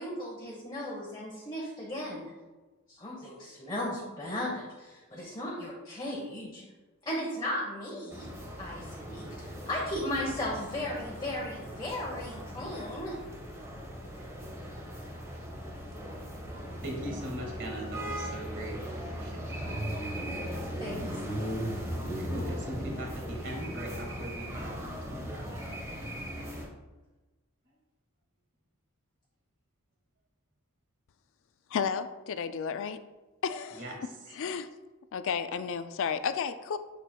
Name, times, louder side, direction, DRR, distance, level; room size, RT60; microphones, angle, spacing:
voice 1, 0.0-2.3 2.9-6.6 7.0-8.3 8.6-13.1 20.8-21.2, left 1 dB, 20° left, -4 dB, 1.0 m, -36 dB
sound 1, 8.1-26.7, equal, 15° right, 1.2 m, -38 dB
voice 2, 16.8-19.9 22.0-25.6 33.7-34.4, right 1 dB, 60° right, -1 dB, 2.0 m, -41 dB
voice 3, 31.7-33.0 33.4-33.8 34.3-34.6 35.1-36.8, left 6 dB, 65° left, 11 dB, 0.4 m, -32 dB
7.1 x 6.8 x 2.3 m, 1.2 s
head